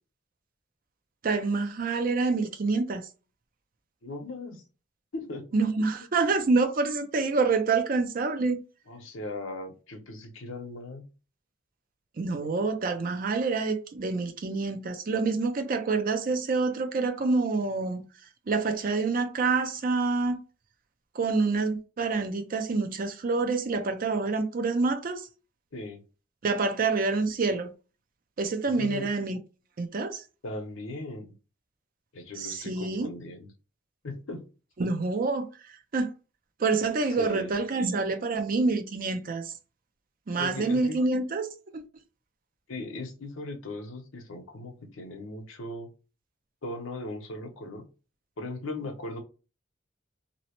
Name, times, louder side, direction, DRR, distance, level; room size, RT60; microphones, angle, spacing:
voice 1, 1.2-3.1 5.5-8.6 12.2-18.0 18.5-20.4 21.2-25.3 26.4-27.7 28.4-29.4 29.8-30.2 32.4-33.1 34.8-35.5 35.9-36.1 36.6-39.5 40.3-41.8, right 3 dB, 45° right, 0.4 m, -27 dB
voice 2, 4.0-4.6 5.1-5.4 6.0-6.1 8.9-11.0 25.7-26.0 28.6-29.1 30.4-31.3 32.1-33.5 34.0-34.4 37.2-37.6 40.4-41.0 42.7-45.9 46.6-47.8 48.4-49.2, left 2 dB, 85° left, 0.8 m, -38 dB
2.7 x 2.1 x 2.8 m
head